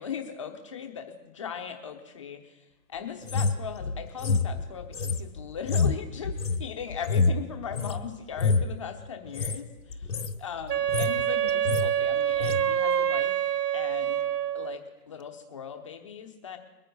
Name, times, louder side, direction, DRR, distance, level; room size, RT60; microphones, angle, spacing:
voice 1, 0.0-10.1 10.4-13.3 13.7-14.2 14.5-16.6, left 7 dB, 20° left, 5 dB, 0.7 m, -39 dB
sound 1, 3.2-8.0 8.3-8.7 9.2-9.6 9.9-10.4 10.7-11.2 11.5-11.9 12.4-12.6, left 4 dB, 75° left, 1.1 m, -27 dB
Wind instrument woodwind instrument, 10.7-14.8, right 9 dB, 70° right, 0.6 m, -26 dB
21.5 x 9.4 x 4.0 m, 1.1 s
figure-of-eight pair, 145°, 50 cm